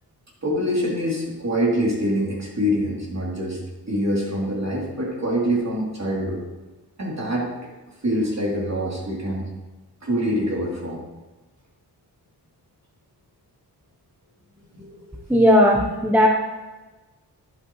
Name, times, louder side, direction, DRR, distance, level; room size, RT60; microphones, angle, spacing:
voice 1, 0.4-3.6 3.9-6.4 7.0-7.5 8.0-9.5 10.0-11.0 14.7-15.2, equal, 40° right, -4 dB, 3.1 m, -25 dB
voice 2, 15.3-16.3, equal, 5° right, 0 dB, 0.9 m, -16 dB
11.5 x 8.1 x 3.2 m, 1.2 s
wide cardioid pair, 100°, 40 cm